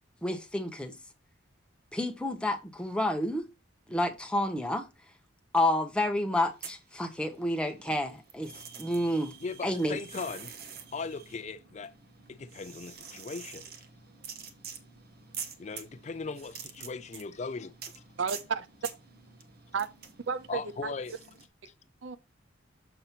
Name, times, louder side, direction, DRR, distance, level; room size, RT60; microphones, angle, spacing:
voice 1, 0.2-1.0 1.9-3.5 3.9-4.9 5.5-9.4 9.6-10.0, left 1 dB, 5° left, 0.8 m, -30 dB
sound 1, 6.5-7.6 7.8-21.5, right 7 dB, 50° right, 0.9 m, -47 dB
voice 2, 9.4-10.5 10.9-11.9 12.3-13.6 15.6-18.0 20.5-21.1, left 4 dB, 35° left, 0.4 m, -38 dB
voice 3, 18.2-18.7 19.7-19.9 20.3-20.9 22.0-22.2, right 6 dB, 70° right, 0.6 m, -32 dB
6.8 x 2.9 x 5.7 m
head